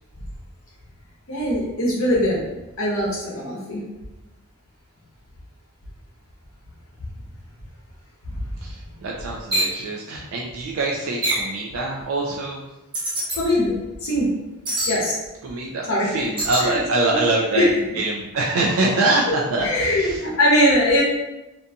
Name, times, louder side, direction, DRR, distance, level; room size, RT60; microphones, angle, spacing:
voice 1, 1.3-2.4 2.8-3.8 13.3-14.3 14.9-15.2 15.9-16.1 16.6-16.8 17.5-17.7 19.6-21.0, left 1 dB, 65° left, -5 dB, 0.8 m, -21 dB
voice 2, 8.6-12.7 15.4-17.7 17.9-20.2, right 2 dB, 65° right, -2 dB, 0.3 m, -24 dB
sound 1, 9.5-9.8 11.2-11.5 12.9-13.4 14.6-15.0 16.4-16.7, right 1 dB, 25° right, 0.6 m, -24 dB
2.6 x 2.2 x 2.6 m, 0.98 s
head